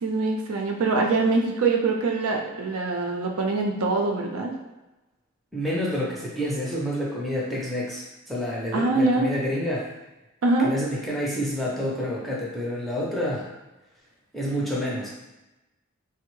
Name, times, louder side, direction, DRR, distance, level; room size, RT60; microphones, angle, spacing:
voice 1, 0.0-4.5 8.7-9.3 10.4-10.7, right 3 dB, 75° right, 1 dB, 0.5 m, -24 dB
voice 2, 5.5-9.9 10.6-13.5 14.3-15.1, equal, ahead, -5 dB, 0.5 m, -28 dB
3.3 x 2.0 x 3.0 m, 1.0 s
head